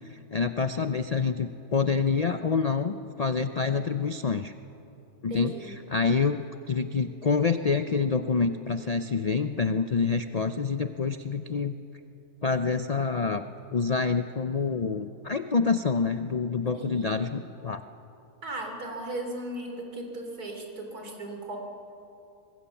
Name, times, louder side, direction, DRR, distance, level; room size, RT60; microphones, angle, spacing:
voice 1, 0.1-4.5 5.2-11.8 12.4-13.4 13.7-17.8, left 5 dB, 65° left, 9 dB, 0.3 m, -27 dB
voice 2, 5.3-5.7 16.7-17.2 18.4-21.6, right 1 dB, 80° right, 2 dB, 3.8 m, -37 dB
25.0 x 22.0 x 7.1 m, 2.8 s
omnidirectional pair, 1.6 m